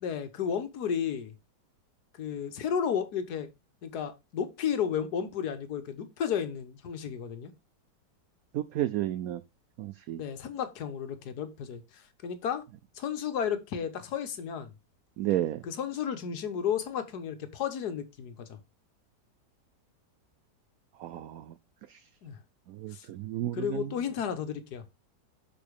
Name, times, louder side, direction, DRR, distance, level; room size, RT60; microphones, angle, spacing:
voice 1, 0.0-1.3 2.1-3.5 3.8-7.5 10.2-12.6 12.9-14.7 15.6-18.6 22.2-22.4 22.9-23.1 23.5-24.8, left 8 dB, 65° left, 1.6 m, -33 dB
voice 2, 8.5-9.4 9.8-10.2 15.2-15.6 21.0-21.5 21.9-22.0 22.7-23.9, right 13 dB, 70° right, 0.9 m, -32 dB
6.8 x 5.0 x 4.8 m
omnidirectional pair, 1.9 m